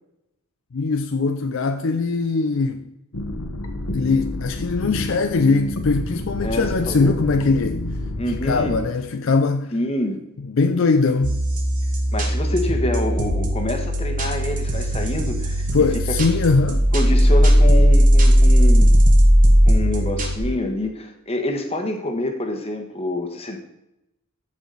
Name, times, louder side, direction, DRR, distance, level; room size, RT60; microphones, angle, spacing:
voice 1, 0.7-2.9 3.9-7.8 8.3-9.7 10.4-11.4 15.7-16.9, left 4 dB, 55° left, 0.5 m, -21 dB
sound 1, 3.1-8.8, left 1 dB, 85° left, 1.3 m, -29 dB
voice 2, 6.4-7.2 8.2-8.8 9.7-10.2 12.1-15.7 16.9-18.9 19.7-23.6, left 1 dB, 25° left, 1.2 m, -26 dB
sound 2, 11.2-20.4, equal, 35° right, 1.4 m, -17 dB
14.0 x 4.9 x 4.0 m
head